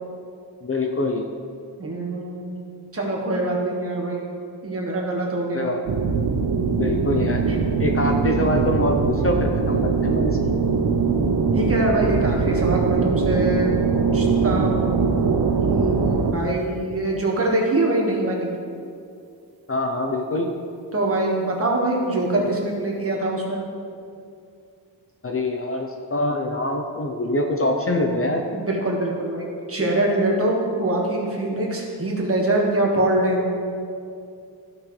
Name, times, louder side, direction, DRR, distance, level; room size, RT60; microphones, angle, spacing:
voice 1, 0.6-1.2 5.5-5.8 6.8-7.4 7.8-10.4 19.7-20.5 25.2-28.4, left 1 dB, 35° left, 2 dB, 0.6 m, -24 dB
voice 2, 1.8-2.5 2.9-4.3 4.6-5.7 7.5-7.7 11.5-15.4 15.6-18.5 20.9-23.6 28.5-33.6, right 1 dB, 30° right, -2 dB, 1.5 m, -24 dB
sound 1, 5.8-16.3, right 5 dB, 60° right, 0.8 m, -21 dB
14.5 x 6.1 x 3.2 m, 2.4 s
wide cardioid pair, 175°, 42 cm